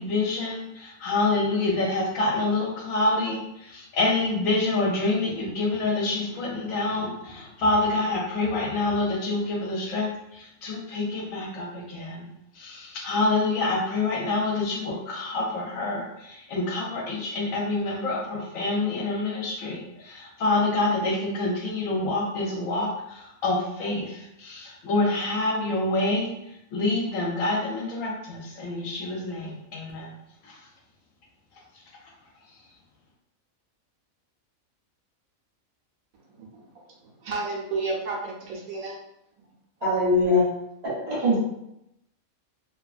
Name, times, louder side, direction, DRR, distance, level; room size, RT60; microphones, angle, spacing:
voice 1, 0.0-12.2 12.6-26.3 26.7-30.1 30.4-30.5, left 2 dB, 75° left, -1 dB, 1.1 m, -27 dB
voice 2, 37.2-39.0, right 3 dB, 90° right, -2 dB, 1.2 m, -31 dB
voice 3, 39.8-40.5 40.8-41.4, left 1 dB, 50° right, -7 dB, 1.4 m, -22 dB
2.9 x 2.3 x 2.4 m, 0.81 s
omnidirectional pair, 1.5 m